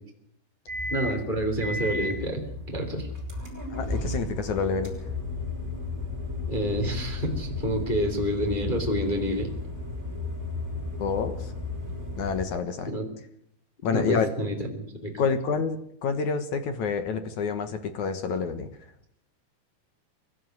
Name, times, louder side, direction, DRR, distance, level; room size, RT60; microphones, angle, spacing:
sound 1, 0.7-12.5, left 2 dB, 15° right, 7.6 m, -34 dB
voice 1, 0.9-3.1 6.5-9.5 12.8-13.1 13.9-15.2, equal, 15° left, 3 dB, 2.8 m, -28 dB
voice 2, 3.7-4.9 11.0-11.5 12.1-12.9 13.8-14.3 15.2-18.7, left 5 dB, 60° left, 10 dB, 2.3 m, -28 dB
24.5 x 13.0 x 9.3 m, 0.70 s
omnidirectional pair, 4.6 m